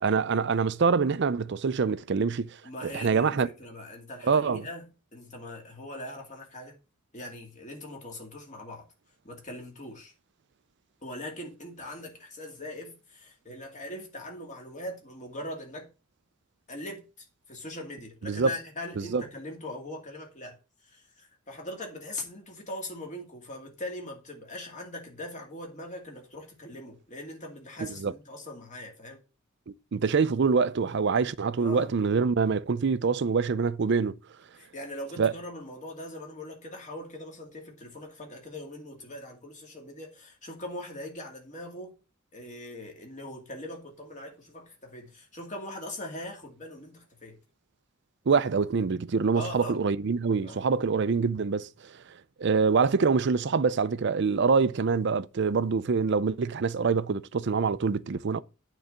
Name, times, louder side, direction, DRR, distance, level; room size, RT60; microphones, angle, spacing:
voice 1, 0.0-3.5 4.2-4.6 18.2-18.5 19.0-19.2 27.8-28.1 29.7-34.2 35.2-35.3 48.3-51.9 52.4-58.4, right 5 dB, 55° right, 0.5 m, -25 dB
voice 2, 2.6-6.8 7.1-8.9 9.2-10.1 11.0-15.9 16.7-20.6 20.8-29.2 31.6-31.9 34.6-42.0 42.3-47.4 49.3-49.8 50.4-50.7, left 1 dB, 35° left, 2.5 m, -41 dB
8.9 x 4.0 x 7.1 m
head